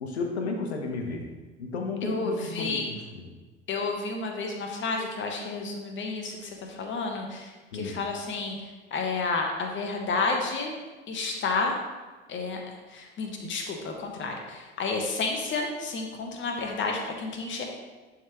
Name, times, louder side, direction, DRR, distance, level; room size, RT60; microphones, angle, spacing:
voice 1, 0.0-1.2 1.6-3.3 7.7-8.0, left 3 dB, 75° left, 3 dB, 1.0 m, -33 dB
voice 2, 2.0-2.9 3.7-6.4 6.7-8.5 8.9-10.8 11.1-11.8 12.3-12.6 12.9-17.6, left 3 dB, 35° left, 2 dB, 1.3 m, -30 dB
10.5 x 3.8 x 3.1 m, 1.3 s
figure-of-eight pair, 65°, 33 cm